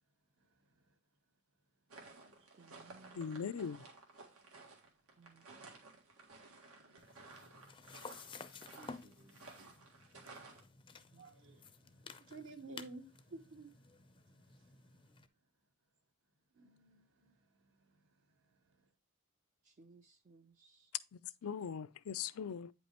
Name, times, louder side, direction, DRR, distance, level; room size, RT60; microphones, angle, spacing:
voice 1, 0.4-0.9 2.2-3.5 5.3-5.8 6.6-7.3 9.0-9.7 10.9-14.8 16.5-18.9, right 3 dB, 60° right, 1.1 m, -57 dB
sound 1, 1.9-10.6, right 3 dB, 85° right, 1.8 m, -56 dB
voice 2, 2.5-3.5 5.2-5.5 8.8-9.0 9.3-9.4 11.1-11.3 19.6-20.9, right 3 dB, 35° right, 0.4 m, -62 dB
voice 3, 3.1-3.8 21.1-22.7, left 7 dB, 75° left, 0.4 m, -41 dB
sound 2, 7.0-15.3, left 4 dB, 20° left, 0.5 m, -54 dB
8.9 x 5.3 x 2.9 m
head